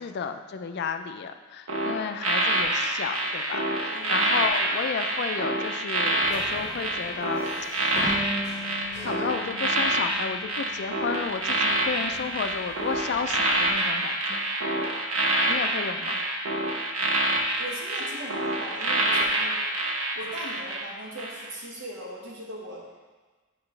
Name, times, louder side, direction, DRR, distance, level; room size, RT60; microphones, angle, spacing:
voice 1, 0.0-7.4 7.7-8.4 8.7-14.2 15.5-16.2, left 6 dB, 55° left, 8 dB, 0.4 m, -32 dB
sound 1, 1.7-20.8 21.2-21.4, right 2 dB, 90° right, 0.9 m, -27 dB
voice 2, 3.9-4.3 17.6-19.6 20.1-22.8, right 1 dB, 65° right, -3 dB, 1.4 m, -39 dB
sound 2, 6.2-13.6, left 1 dB, 35° left, 0.9 m, -45 dB
Bass guitar, 8.1-14.3, equal, ahead, 0.6 m, -41 dB
8.1 x 4.8 x 3.2 m, 1.3 s
head